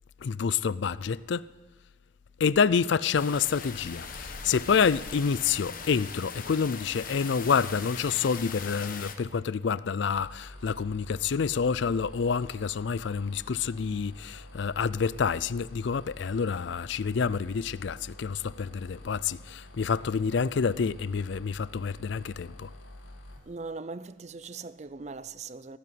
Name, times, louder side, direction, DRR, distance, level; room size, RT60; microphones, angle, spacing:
voice 1, 0.2-1.5 2.4-22.7, left 6 dB, 60° left, 0.4 m, -28 dB
sound 1, 3.1-9.2, left 5 dB, 40° left, 1.1 m, -40 dB
sound 2, 10.1-23.4, left 1 dB, 75° left, 2.4 m, -48 dB
voice 2, 23.5-25.8, right 4 dB, 35° right, 0.5 m, -40 dB
17.0 x 8.5 x 9.3 m
head